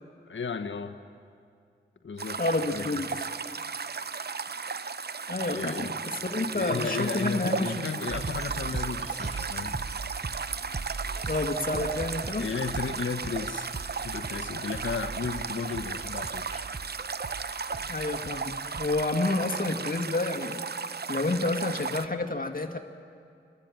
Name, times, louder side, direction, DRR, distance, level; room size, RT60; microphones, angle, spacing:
voice 1, 0.2-1.0 2.0-2.4 2.7-3.0 5.5-6.0 6.5-9.8 12.4-13.7 14.0-16.5, left 5 dB, 75° left, 7 dB, 1.0 m, -34 dB
sound 1, 2.2-22.1, right 5 dB, 55° right, 0.7 m, -35 dB
voice 2, 2.4-3.1 4.6-4.7 5.3-7.9 9.6-9.7 11.3-12.4 17.7-20.6 21.1-22.8, left 2 dB, 45° left, 4 dB, 2.0 m, -29 dB
sound 2, 8.1-19.0, right 4 dB, 35° right, 0.9 m, -39 dB
26.5 x 13.5 x 8.9 m, 2.3 s
cardioid pair, 45°, 20 cm